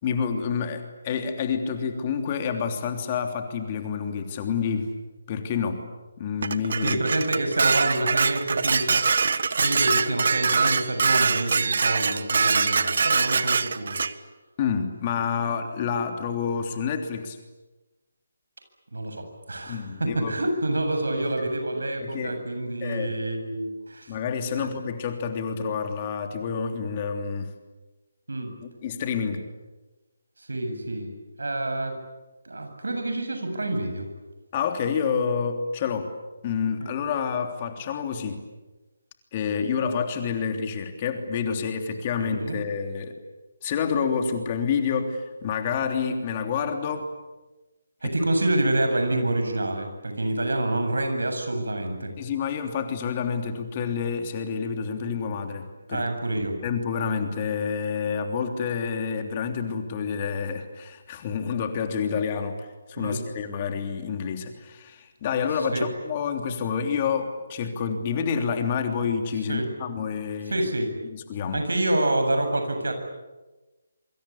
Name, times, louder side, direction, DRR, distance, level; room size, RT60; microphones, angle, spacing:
voice 1, 0.0-4.9 5.3-5.8 6.2-7.0 14.6-17.4 19.7-20.4 21.1-21.2 22.0-22.4 22.8-23.1 24.1-27.5 28.6-29.4 34.5-36.1 36.4-38.4 39.3-43.1 43.6-47.1 52.2-56.0 56.6-70.5 70.8-71.6, left 6 dB, 30° left, 5 dB, 3.2 m, -28 dB
Dishes pots and pans, 6.4-14.1, right 5 dB, 55° right, 1.5 m, -23 dB
voice 2, 6.8-9.0 9.5-14.1 18.9-24.2 24.6-24.7 28.3-28.5 30.4-31.1 31.4-32.0 32.4-34.1 36.8-36.9 42.2-42.6 48.0-52.1 55.9-56.6 63.0-63.2 65.5-65.9 69.5-69.7 70.5-70.9 71.5-72.9, right 1 dB, 75° right, 6 dB, 7.6 m, -27 dB
26.5 x 25.0 x 8.6 m, 1.1 s
figure-of-eight pair, 145°, 0 cm